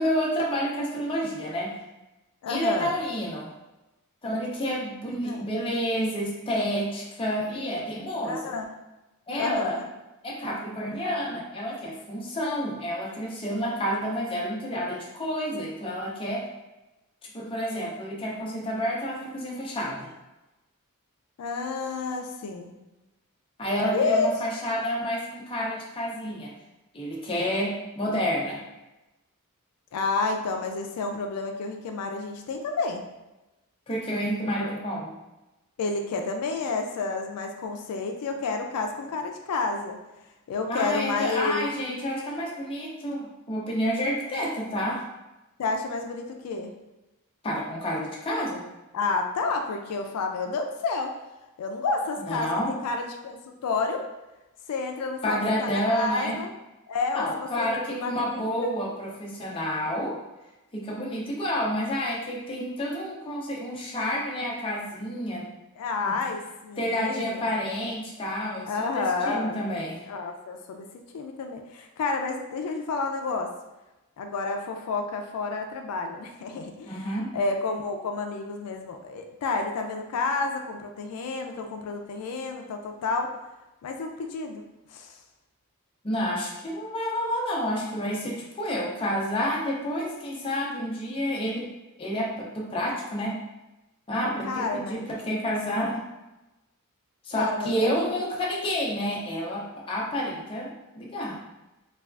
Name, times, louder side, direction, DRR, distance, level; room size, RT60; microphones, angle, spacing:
voice 1, 0.0-1.8 2.5-3.5 4.2-8.4 9.3-9.8 10.2-16.4 17.3-20.1 23.6-26.5 26.9-28.6 33.9-35.1 40.7-45.0 47.4-48.6 52.3-52.7 55.2-56.4 57.1-60.2 60.7-65.5 66.0-66.2 66.8-70.0 76.9-77.3 86.0-91.7 92.0-93.4 94.1-96.0 97.2-101.4, equal, 25° left, -3 dB, 0.5 m, -29 dB
voice 2, 2.4-3.0 5.2-5.5 8.2-8.7 9.4-9.9 21.4-22.7 23.9-24.3 29.9-33.0 34.6-34.7 35.8-40.0 40.5-41.7 45.6-46.7 48.9-51.2 51.6-54.1 54.7-56.5 56.9-58.7 65.8-67.5 68.6-69.6 70.1-70.9 71.1-73.5 74.2-83.3 83.8-84.6 84.9-85.2 94.4-95.0 97.4-98.2, left 3 dB, 85° left, 4 dB, 0.3 m, -30 dB
3.3 x 2.3 x 2.4 m, 1.0 s
head